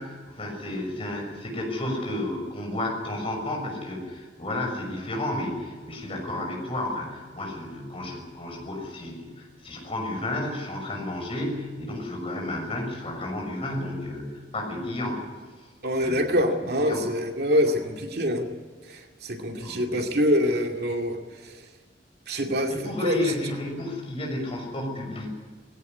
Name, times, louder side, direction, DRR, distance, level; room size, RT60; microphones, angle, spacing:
voice 1, 0.0-15.2 16.0-16.5 16.8-17.0 19.6-20.0 22.7-25.3, left 1 dB, 35° left, 2 dB, 6.4 m, -32 dB
voice 2, 15.8-18.5 18.9-21.6 22.3-23.2, equal, 60° right, 3 dB, 2.4 m, -25 dB
20.0 x 17.0 x 9.7 m, 1.4 s
head